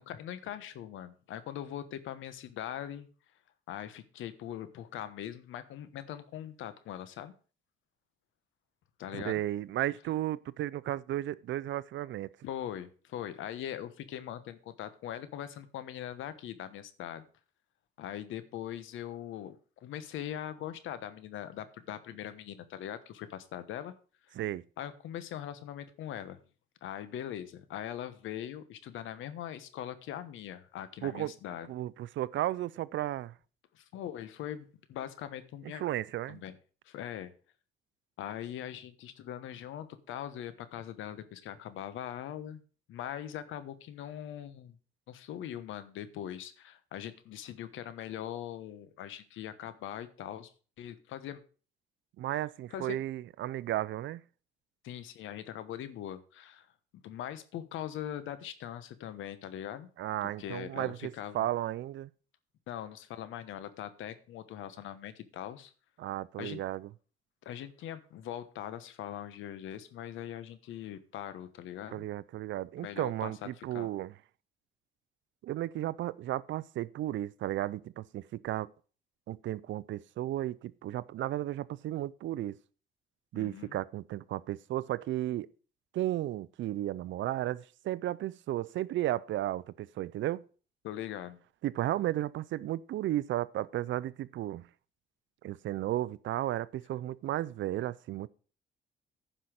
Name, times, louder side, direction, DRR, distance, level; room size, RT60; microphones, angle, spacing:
voice 1, 0.0-3.1 3.7-7.3 9.0-9.4 12.4-17.2 18.0-23.9 24.8-26.4 26.8-31.7 33.7-35.8 36.3-36.6 36.8-37.3 38.2-42.6 42.9-44.8 45.1-50.5 50.8-51.4 52.7-53.0 54.8-56.7 56.9-59.9 60.2-61.5 62.7-65.7 66.4-66.6 67.4-72.0 72.8-73.9 83.3-83.8 90.8-91.4, left 11 dB, 85° left, 1.1 m, -41 dB
voice 2, 9.1-12.3 24.4-24.6 31.0-31.3 31.7-33.3 35.7-36.4 52.2-54.2 60.0-62.1 66.0-66.9 71.9-74.1 75.4-78.7 79.3-82.6 83.3-85.5 85.9-90.4 91.6-94.6 95.4-98.3, right 14 dB, 75° right, 0.5 m, -34 dB
10.0 x 5.6 x 6.4 m
cardioid pair, 90°, 20 cm